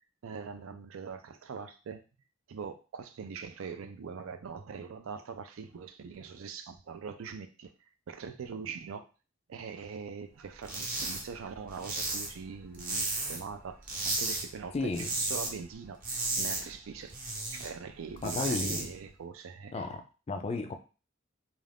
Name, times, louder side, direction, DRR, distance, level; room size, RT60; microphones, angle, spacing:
voice 1, 0.2-2.0 2.5-7.7 8.1-9.0 9.5-16.0 16.4-17.2 17.5-19.9, right 6 dB, 80° right, 9 dB, 0.4 m, -42 dB
sound 1, 10.6-11.2 11.5-13.5 13.8-14.4 14.8-15.5 15.8-17.7 18.1-18.8, right 2 dB, 45° right, 0.8 m, -34 dB
voice 2, 14.7-15.1 18.2-18.9 19.7-20.8, left 3 dB, 30° left, 6 dB, 0.3 m, -33 dB
2.4 x 2.3 x 3.3 m, 0.34 s
head